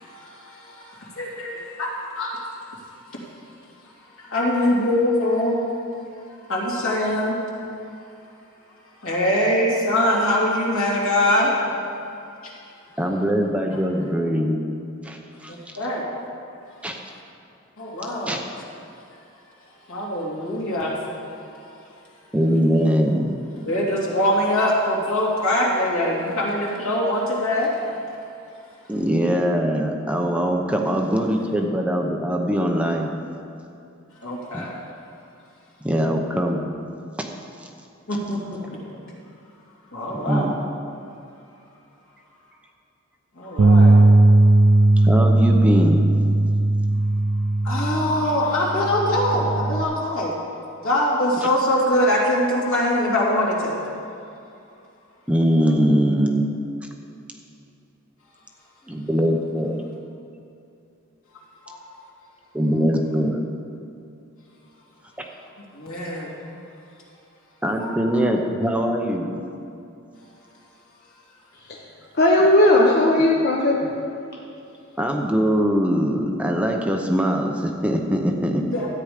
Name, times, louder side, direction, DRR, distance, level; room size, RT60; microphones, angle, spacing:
voice 1, 0.0-2.4 2.7-2.9 4.2-5.6 6.5-7.4 9.0-11.7 15.5-16.1 17.8-18.3 19.9-21.0 21.4-21.7 23.7-27.9 34.2-34.7 38.1-38.8 39.9-40.5 43.3-44.0 47.6-50.3 50.8-53.8 61.7-61.8 65.7-66.4 67.8-68.2 78.6-78.9, left 1 dB, 80° left, -4 dB, 2.8 m, -23 dB
voice 2, 13.0-14.6 15.0-15.5 16.8-16.9 18.3-18.4 22.3-23.3 23.6-23.7 28.9-33.1 34.5-34.7 35.8-36.7 40.1-40.5 45.0-46.1 55.3-56.6 58.9-59.8 62.5-63.4 67.6-69.4 75.0-78.7, equal, 5° right, 1 dB, 0.8 m, -22 dB
Bass guitar, 43.6-49.8, right 2 dB, 80° right, 0.6 m, -17 dB
voice 3, 72.2-74.1, left 1 dB, 50° left, -3 dB, 1.1 m, -17 dB
13.0 x 8.9 x 5.1 m, 2.6 s
head